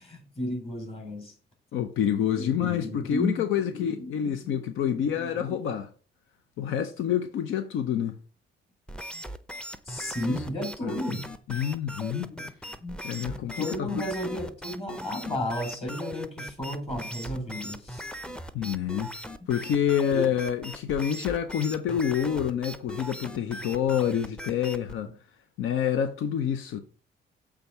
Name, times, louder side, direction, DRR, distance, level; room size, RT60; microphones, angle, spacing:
voice 1, 0.0-1.3 2.4-5.6 9.9-11.3 12.3-18.2 20.1-20.3, left 1 dB, 30° left, 3.6 m, -34 dB
voice 2, 1.7-5.9 6.6-8.1 10.8-11.0 11.5-12.3 13.0-14.0 18.5-19.2 19.5-25.1 25.6-26.8, left 9 dB, 80° left, 0.6 m, -27 dB
sound 1, 8.9-25.0, equal, 5° left, 0.6 m, -39 dB
6.9 x 3.5 x 5.7 m
cardioid pair, 90°, 20 cm